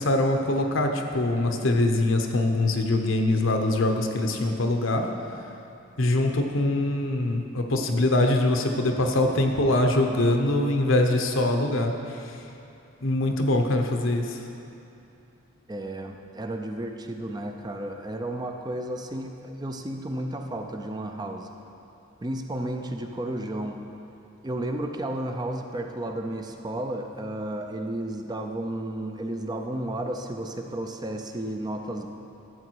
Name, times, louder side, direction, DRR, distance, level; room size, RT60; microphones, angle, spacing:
voice 1, 0.0-5.1 6.0-12.0 13.0-14.4, left 2 dB, 70° left, 4 dB, 0.9 m, -23 dB
voice 2, 15.7-21.5 22.2-23.8 24.4-32.1, right 1 dB, 20° right, 4 dB, 0.5 m, -32 dB
12.0 x 7.7 x 4.7 m, 2.8 s
head